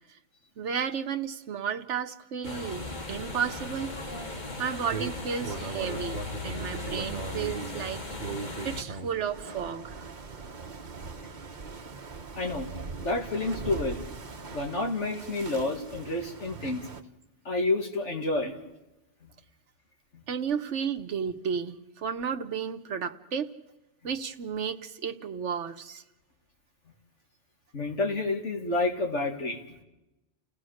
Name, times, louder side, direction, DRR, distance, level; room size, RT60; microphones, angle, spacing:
voice 1, 0.6-3.9 4.6-8.0 8.6-10.0 20.3-23.5 24.0-26.0, right 7 dB, 80° right, 7 dB, 1.3 m, -33 dB
sound 1, 2.4-8.8, left 2 dB, 40° left, 2.0 m, -37 dB
sound 2, 4.8-17.0, right 4 dB, 40° right, 1.1 m, -40 dB
voice 2, 12.4-12.7 13.0-14.0 14.5-16.9 17.4-18.5 27.7-29.8, left 2 dB, 75° left, 2 dB, 2.5 m, -29 dB
30.0 x 17.5 x 6.4 m, 0.97 s
omnidirectional pair, 1.2 m